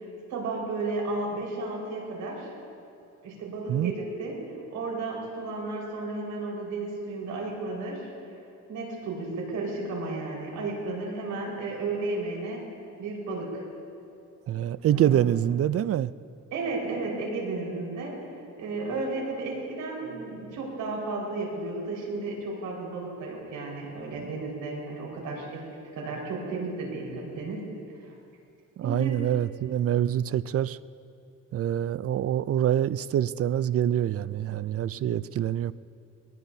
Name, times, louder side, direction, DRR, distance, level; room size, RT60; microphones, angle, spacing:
voice 1, 0.3-2.5 3.2-8.1 8.7-12.7 13.0-13.6 14.9-15.2 16.5-18.2 18.6-25.6 25.9-27.7 28.0-28.1 28.8-29.2, right 3 dB, 85° right, -3 dB, 5.0 m, -33 dB
voice 2, 14.5-16.1 28.8-30.8 31.5-35.7, right 11 dB, 50° right, 17 dB, 0.5 m, -25 dB
22.5 x 20.0 x 2.8 m, 2.5 s
cardioid pair, 90°, 30 cm